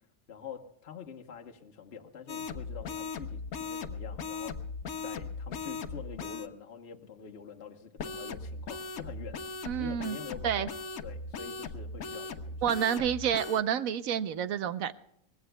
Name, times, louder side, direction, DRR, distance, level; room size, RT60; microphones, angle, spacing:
voice 1, 0.3-4.6 5.0-9.4 9.8-10.7 11.0-12.6, left 7 dB, 50° left, 2 dB, 1.3 m, -46 dB
sound 1, 2.3-6.5 8.0-13.6, left 4 dB, 85° left, 1.4 m, -39 dB
voice 2, 9.6-10.2 10.4-10.7 12.6-14.9, right 9 dB, 75° right, 13 dB, 1.1 m, -29 dB
24.0 x 19.5 x 2.3 m, 0.80 s
omnidirectional pair, 1.5 m